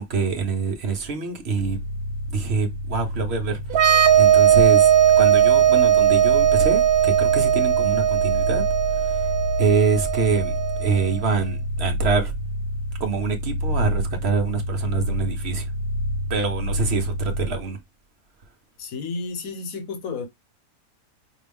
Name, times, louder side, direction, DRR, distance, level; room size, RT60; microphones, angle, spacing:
voice 1, 0.0-1.8 2.3-8.6 8.9-9.3 9.6-10.5 10.8-12.3 13.0-15.7 16.3-17.8, right 5 dB, 50° right, 1.0 m, -25 dB
sound 1, 1.5-17.7, equal, 45° left, 0.9 m, -29 dB
sound 2, 3.7-11.2, right 9 dB, 90° right, 1.2 m, -18 dB
voice 2, 18.8-20.3, left 4 dB, 70° left, 1.3 m, -31 dB
5.1 x 2.3 x 3.4 m
omnidirectional pair, 1.5 m